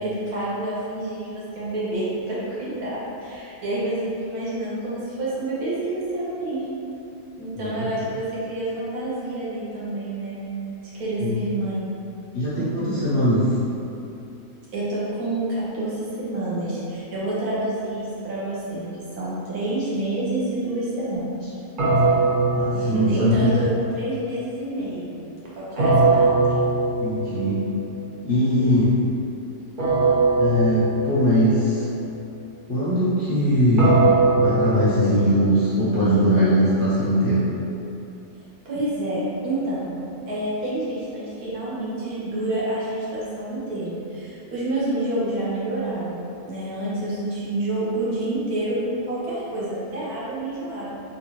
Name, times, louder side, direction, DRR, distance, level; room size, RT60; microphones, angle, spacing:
voice 1, 0.0-6.8 7.4-10.4 10.9-11.9 14.7-21.5 22.7-25.2 25.5-26.3 27.2-27.4 38.6-50.9, right 1 dB, 70° right, -8 dB, 1.4 m, -28 dB
voice 2, 7.6-7.9 11.2-11.4 12.3-13.5 22.5-23.5 27.0-27.6 28.2-28.9 30.4-31.8 32.7-34.1 34.4-37.5, equal, 50° left, -11 dB, 0.7 m, -20 dB
sound 1, 21.8-23.8 25.8-27.6 29.8-31.6 33.8-36.0, right 3 dB, 45° right, 0.6 m, -21 dB
3.7 x 2.5 x 3.0 m, 2.7 s
omnidirectional pair, 1.6 m